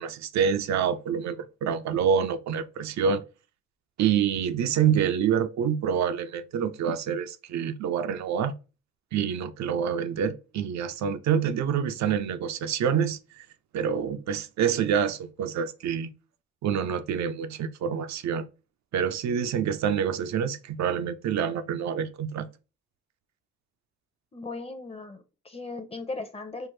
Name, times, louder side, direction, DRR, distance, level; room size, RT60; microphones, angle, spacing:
voice 1, 0.0-3.2 4.0-8.5 9.1-13.2 13.7-16.1 16.6-18.4 18.9-22.5, right 7 dB, 65° right, 0.5 m, -27 dB
voice 2, 24.3-26.7, left 3 dB, 20° left, 0.7 m, -37 dB
3.4 x 2.0 x 3.1 m
cardioid pair, 90°, 30 cm